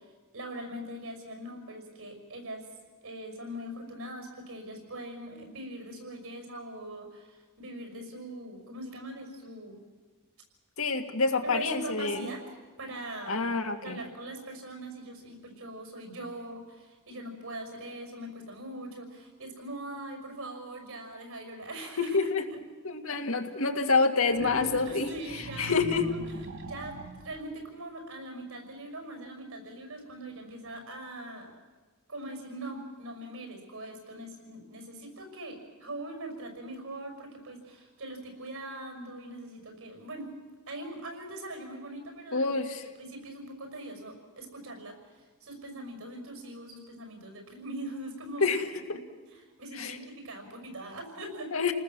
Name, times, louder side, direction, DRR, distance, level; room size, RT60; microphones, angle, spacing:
voice 1, 0.0-2.7 3.0-9.8 11.4-13.5 13.8-22.2 22.5-22.6 24.9-25.8 26.0-26.2 26.6-27.0 27.2-31.5 32.1-40.3 40.7-42.5 43.0-48.5 49.3-51.5, right 1 dB, 75° right, 4 dB, 6.0 m, -41 dB
voice 2, 10.8-12.3 13.3-14.0 22.1-22.4 22.8-26.1 42.3-42.8 48.4-48.6 48.9-49.0 49.7-50.0 51.5-51.7, left 4 dB, 70° left, 5 dB, 2.0 m, -27 dB
sound 1, 24.3-27.4, right 1 dB, 55° right, 3.7 m, -39 dB
29.5 x 19.5 x 7.5 m, 1.3 s
head